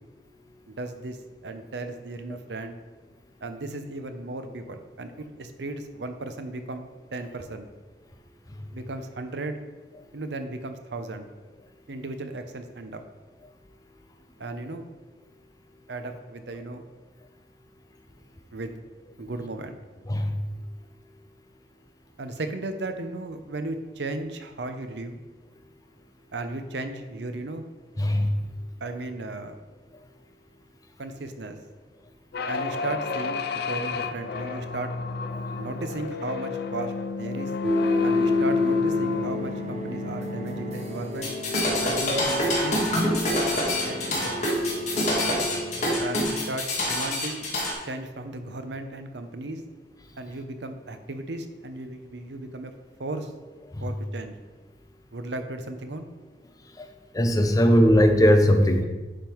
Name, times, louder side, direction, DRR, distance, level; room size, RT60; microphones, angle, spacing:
voice 1, 0.7-1.2 1.4-2.8 3.4-7.7 8.7-9.6 10.1-11.3 11.9-13.0 14.4-14.9 15.9-16.9 18.5-18.8 19.2-19.8 22.2-25.2 26.3-27.6 28.8-29.6 31.0-31.6 32.5-34.9 35.5-37.5 38.0-41.3 41.8-43.3 43.8-44.3 46.0-47.5 47.9-49.6 50.2-52.7 53.0-53.3 53.8-54.3 55.1-56.1, right 2 dB, 75° right, 7 dB, 0.7 m, -35 dB
voice 2, 28.0-28.3 53.7-53.8 56.8-56.9 57.1-58.8, equal, 20° left, 5 dB, 0.6 m, -19 dB
sound 1, 32.3-41.1, left 4 dB, 60° left, 0.4 m, -32 dB
sound 2, 37.6-46.2, left 3 dB, 40° right, 0.8 m, -29 dB
sound 3, 41.2-47.7, left 1 dB, 40° left, 1.7 m, -26 dB
10.0 x 3.6 x 4.5 m, 1.2 s
head